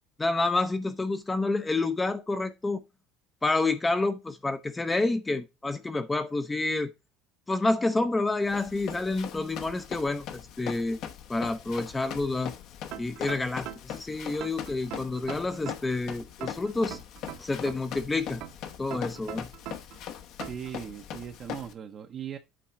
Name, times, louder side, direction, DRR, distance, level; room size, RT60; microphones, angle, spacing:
voice 1, 0.2-2.8 3.4-6.9 7.5-11.0 11.3-12.5 13.0-17.0 17.4-18.4 18.8-19.5, left 2 dB, 10° left, 0.6 m, -28 dB
Run, 8.5-21.7, left 9 dB, 50° left, 0.9 m, -41 dB
sound 1, 12.9-14.0 14.4-16.0 16.4-18.0 18.4-20.0 20.4-20.7, right 12 dB, 60° right, 1.2 m, -40 dB
voice 2, 20.5-22.4, right 8 dB, 30° right, 0.7 m, -39 dB
8.7 x 3.6 x 5.6 m
cardioid pair, 160°, 0 cm